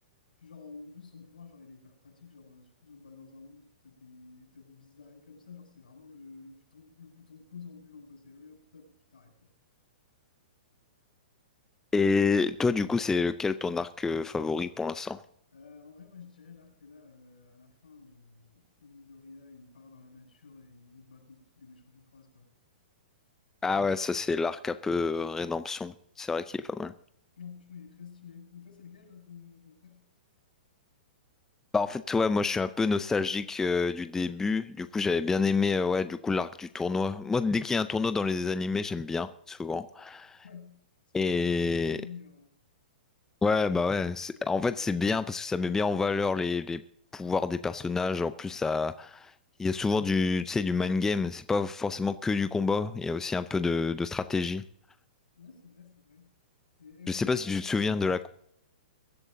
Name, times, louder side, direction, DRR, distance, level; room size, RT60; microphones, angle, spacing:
voice 1, 0.4-9.3 15.5-22.6 27.4-30.0 40.4-40.8 41.2-42.5 55.4-56.3 56.8-58.0, left 5 dB, 75° left, 2 dB, 6.7 m, -50 dB
voice 2, 11.9-15.2 23.6-26.9 31.7-40.4 41.1-42.0 43.4-46.8 47.1-49.3 49.6-54.6 57.1-58.3, left 4 dB, 10° left, 12 dB, 0.5 m, -28 dB
23.0 x 11.5 x 2.7 m, 0.71 s
figure-of-eight pair, 115°, 5 cm